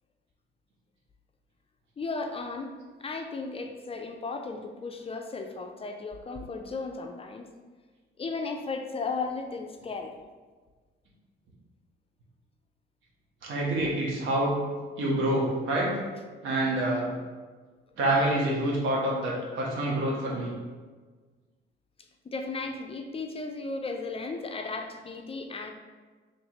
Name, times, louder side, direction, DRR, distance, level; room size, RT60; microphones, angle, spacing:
voice 1, 2.0-2.7 3.0-7.5 8.2-10.1 13.8-13.9 22.2-25.7, left 3 dB, 30° left, 4 dB, 0.4 m, -35 dB
voice 2, 13.4-14.6 15.0-16.0 16.4-17.1 18.0-20.5, right 1 dB, 80° right, -3 dB, 1.1 m, -27 dB
3.2 x 2.9 x 4.2 m, 1.4 s
cardioid pair, 90°, 20 cm